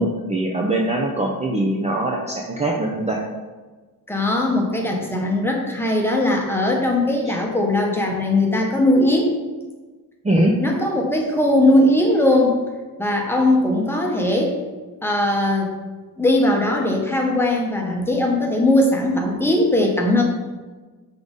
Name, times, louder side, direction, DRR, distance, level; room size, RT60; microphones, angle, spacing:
voice 1, 0.0-3.2 10.2-10.5, right 1 dB, 20° right, -1 dB, 0.6 m, -22 dB
voice 2, 4.1-9.4 10.6-12.6 13.0-14.6 15.0-15.7 16.2-20.2, left 1 dB, 5° left, -1 dB, 1.0 m, -19 dB
6.0 x 3.7 x 5.2 m, 1.3 s
wide cardioid pair, 130°, 36 cm